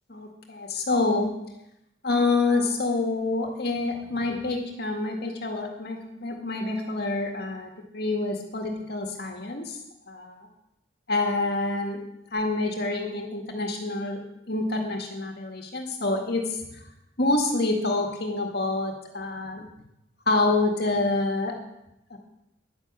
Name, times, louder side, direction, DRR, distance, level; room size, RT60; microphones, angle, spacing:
voice 1, 0.1-1.3 2.0-9.8 10.1-10.5 11.1-12.0 12.3-14.2 14.5-16.9 17.2-19.7 20.3-21.5 22.1-22.2, left 2 dB, 55° left, 2 dB, 1.9 m, -27 dB
11.0 x 10.0 x 7.4 m, 0.86 s
head